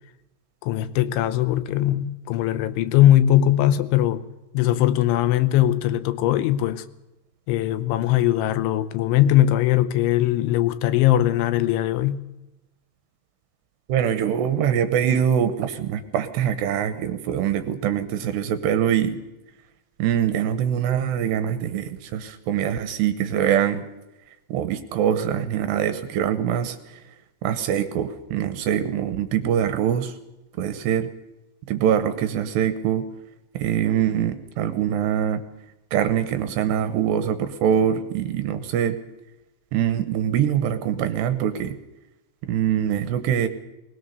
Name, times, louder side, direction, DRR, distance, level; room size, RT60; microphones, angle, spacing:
voice 1, 0.6-4.2 4.5-6.8 7.5-12.3, left 13 dB, 80° left, 3.2 m, -20 dB
voice 2, 13.9-19.2 20.0-23.8 24.5-27.0 27.4-30.1 30.6-31.1 31.7-33.0 33.5-35.4 35.9-39.0 39.7-41.8 42.5-43.5, right 9 dB, 75° right, 2.9 m, -23 dB
20.5 x 20.0 x 6.7 m
omnidirectional pair, 5.5 m